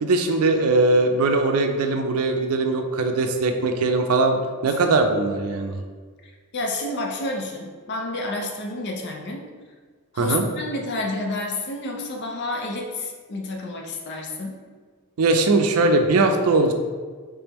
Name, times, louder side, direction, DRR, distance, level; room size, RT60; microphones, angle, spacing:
voice 1, 0.0-4.4 4.6-5.8 10.2-10.4 15.2-16.7, right 3 dB, 80° right, 6 dB, 0.4 m, -20 dB
voice 2, 6.5-9.5 10.1-14.6, left 2 dB, 50° left, 1 dB, 0.6 m, -30 dB
3.5 x 3.3 x 3.0 m, 1.5 s
head